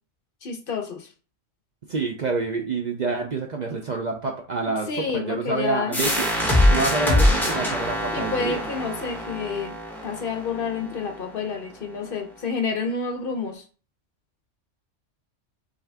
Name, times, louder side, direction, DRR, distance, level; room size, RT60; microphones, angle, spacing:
voice 1, 0.4-1.1 4.9-6.0 7.0-7.2 8.1-13.6, left 5 dB, 55° left, 6 dB, 0.7 m, -29 dB
voice 2, 1.9-6.3 6.7-8.6, right 3 dB, 50° right, 2 dB, 0.6 m, -27 dB
sound 1, 5.9-11.3, left 1 dB, ahead, 1.1 m, -23 dB
5.6 x 2.7 x 3.4 m, 0.36 s
omnidirectional pair, 1.3 m